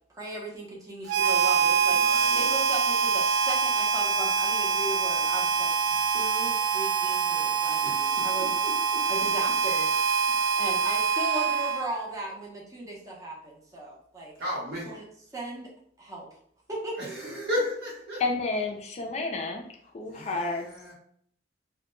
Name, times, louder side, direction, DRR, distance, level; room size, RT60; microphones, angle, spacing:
voice 1, 0.1-5.8 6.1-8.6 9.1-9.9 10.6-14.3 14.9-15.0 15.3-15.7 16.0-16.3 16.7-17.0, right 2 dB, 20° right, -4 dB, 0.6 m, -37 dB
Harmonica, 1.1-12.1, right 6 dB, 85° right, 0.3 m, -25 dB
voice 2, 1.9-2.4 7.8-9.0 14.4-15.0 17.0-18.2 20.1-20.9, left 1 dB, 60° right, -4 dB, 0.9 m, -35 dB
voice 3, 18.2-19.6 19.9-20.7, left 3 dB, 40° left, 2 dB, 0.3 m, -30 dB
2.1 x 2.1 x 3.0 m, 0.64 s
head